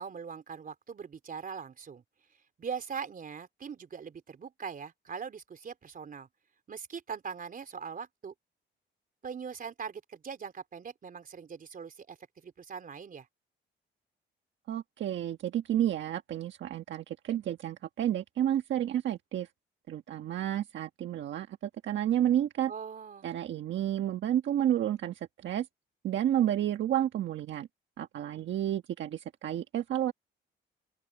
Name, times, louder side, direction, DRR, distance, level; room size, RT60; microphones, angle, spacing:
voice 1, 0.0-2.0 2.6-6.3 6.7-8.3 9.2-12.2 12.4-13.3 22.7-23.3, right 6 dB, 45° right, 3.8 m, -41 dB
voice 2, 14.7-19.5 19.9-22.7 23.2-25.7 26.0-27.7 28.0-30.1, right 11 dB, 70° right, 1.4 m, -31 dB
open air
cardioid pair, 90°, 20 cm